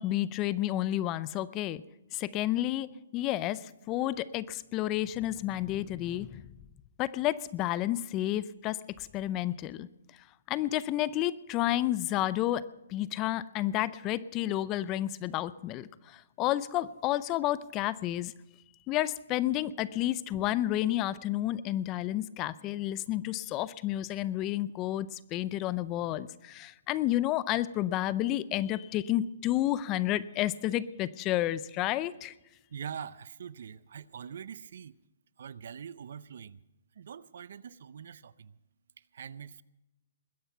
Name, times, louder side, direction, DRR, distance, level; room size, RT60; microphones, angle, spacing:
voice 1, 0.0-1.8 2.1-6.4 7.0-9.9 10.5-12.6 12.9-18.3 18.9-32.3, left 14 dB, 25° left, 0.5 m, -31 dB
voice 2, 32.7-35.0 35.4-36.6 37.0-38.6 39.1-39.6, right 7 dB, 65° right, 0.6 m, -43 dB
20.5 x 10.0 x 5.6 m
hypercardioid pair, 150°, 0 cm